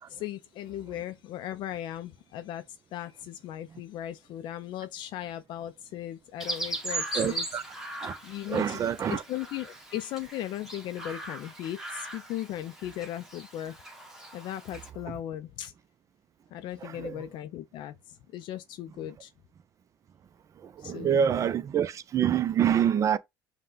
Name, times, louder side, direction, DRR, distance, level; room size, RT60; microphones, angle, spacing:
voice 1, 0.1-7.5 8.2-8.8 9.1-13.8 14.3-15.7 16.5-19.3 20.8-21.2, left 12 dB, 60° left, 0.4 m, -37 dB
Chirp tweet, 6.4-14.9, right 2 dB, 5° right, 1.3 m, -39 dB
voice 2, 7.2-7.6 8.0-8.1 8.5-9.2 17.0-17.1 20.8-23.2, right 8 dB, 35° right, 0.5 m, -26 dB
5.4 x 2.2 x 3.8 m
supercardioid pair, 95°, 9 cm